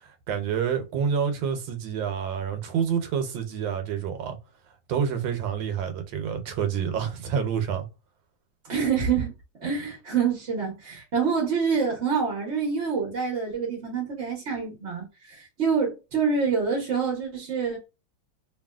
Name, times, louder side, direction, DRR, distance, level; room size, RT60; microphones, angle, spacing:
voice 1, 0.3-4.4 4.9-7.8, right 7 dB, 75° right, 1.3 m, -28 dB
voice 2, 8.6-9.3 9.6-17.8, right 6 dB, 50° right, 0.9 m, -26 dB
2.9 x 2.7 x 2.3 m
omnidirectional pair, 2.1 m